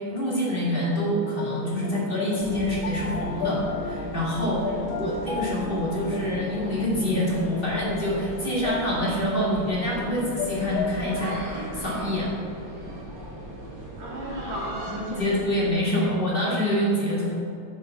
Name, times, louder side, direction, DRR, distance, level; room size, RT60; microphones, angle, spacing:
voice 1, 0.1-12.5 15.0-17.3, equal, 30° left, -6 dB, 1.7 m, -26 dB
sound 1, 0.6-11.4, left 5 dB, 85° left, 1.5 m, -35 dB
sound 2, 2.3-15.7, right 1 dB, 60° right, 2.2 m, -39 dB
voice 2, 13.9-15.6 16.0-16.1, right 1 dB, 35° right, -3 dB, 1.6 m, -35 dB
6.5 x 5.3 x 6.8 m, 2.5 s
omnidirectional pair, 2.1 m